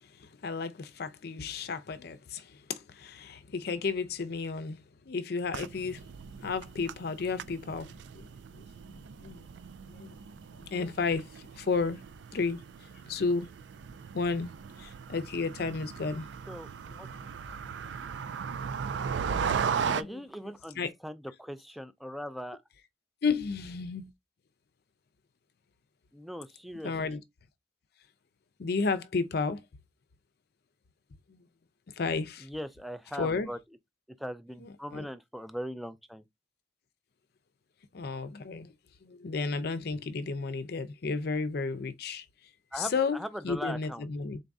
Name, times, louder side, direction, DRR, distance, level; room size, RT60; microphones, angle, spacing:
voice 1, 0.0-4.8 5.1-6.1 6.4-8.3 8.5-9.4 9.9-10.1 10.5-12.0 12.3-13.5 14.1-14.5 14.8-16.3 16.9-17.0 17.5-17.6 19.9-20.2 20.8-20.9 23.2-24.1 26.8-27.2 28.6-29.6 31.3-31.4 32.0-32.5 33.2-33.5 34.6-35.1 37.9-38.7 39.0-42.3 42.7-43.2 43.4-44.4, left 4 dB, 60° left, 0.5 m, -33 dB
sound 1, 5.5-20.0, right 6 dB, 80° right, 0.4 m, -37 dB
voice 2, 19.9-22.6 26.1-27.2 32.4-33.6 34.2-36.2 42.7-44.0, equal, ahead, 0.3 m, -40 dB
3.9 x 2.6 x 3.4 m
head